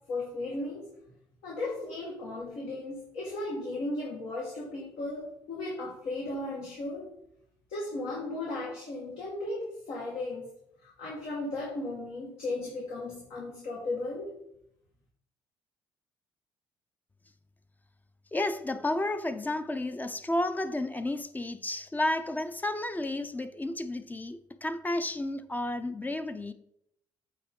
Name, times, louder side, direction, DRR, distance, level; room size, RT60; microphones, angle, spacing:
voice 1, 0.1-0.9 1.4-7.1 7.7-10.5 10.8-14.3, left 2 dB, 80° left, 1.8 m, -36 dB
voice 2, 18.3-26.5, left 1 dB, 15° left, 0.5 m, -32 dB
8.3 x 3.7 x 3.7 m
supercardioid pair, 70°, 10 cm